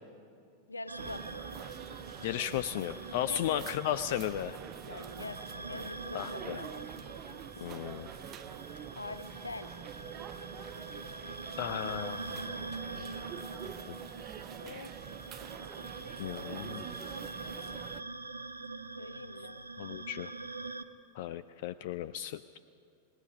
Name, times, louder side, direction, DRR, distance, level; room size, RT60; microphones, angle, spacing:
voice 1, 0.7-1.2 3.2-3.8 4.1-4.3 4.8-6.8 8.9-9.7 14.6-14.9 19.0-19.6, left 3 dB, 80° left, 13 dB, 0.8 m, -44 dB
sound 1, 0.9-20.8, right 3 dB, 80° right, 0.7 m, -44 dB
sound 2, 1.0-18.0, right 10 dB, 30° right, 0.7 m, -46 dB
voice 2, 2.2-4.6 6.1-6.6 7.6-8.1 11.6-13.1 13.9-14.0 16.2-16.8 19.8-20.3 21.1-22.6, left 11 dB, 50° left, 15 dB, 0.4 m, -35 dB
27.0 x 20.0 x 5.1 m, 2.6 s
figure-of-eight pair, 90°, 0 cm